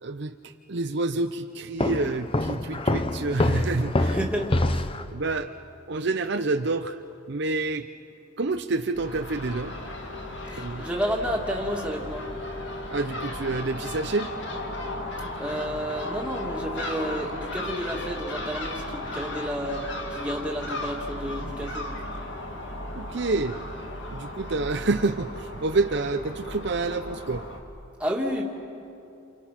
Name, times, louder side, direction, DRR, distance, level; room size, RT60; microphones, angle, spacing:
voice 1, 0.0-4.2 5.1-5.5 5.9-7.0 7.3-7.9 8.4-9.7 10.6-10.8 12.9-14.3 22.9-23.6 24.1-27.4, right 3 dB, 55° right, 7 dB, 0.6 m, -28 dB
Walk footsteps, 1.8-5.1, left 1 dB, 25° left, 0.6 m, -26 dB
voice 2, 4.1-4.8 10.5-12.3 15.4-19.8 20.1-21.9 28.0-28.4, equal, 5° right, -1 dB, 2.3 m, -31 dB
Crow / Gull seagull, 9.0-27.6, left 1 dB, 60° left, 2.3 m, -35 dB
29.0 x 28.5 x 5.9 m, 2.7 s
head